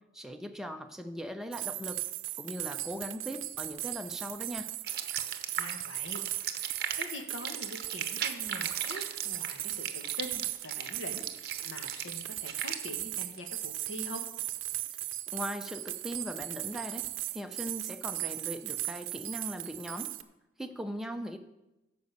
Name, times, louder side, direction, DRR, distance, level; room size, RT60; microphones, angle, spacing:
voice 1, 0.1-2.0 2.4-4.7 15.3-20.1 20.6-21.4, equal, ahead, 5 dB, 0.6 m, -39 dB
sound 1, 1.5-20.2, right 15 dB, 85° right, 0.6 m, -38 dB
sound 2, 4.8-12.8, right 9 dB, 50° right, 0.8 m, -37 dB
voice 2, 5.6-6.2 6.6-14.3, left 1 dB, 80° left, 5 dB, 1.5 m, -44 dB
13.0 x 5.2 x 6.8 m, 0.99 s
head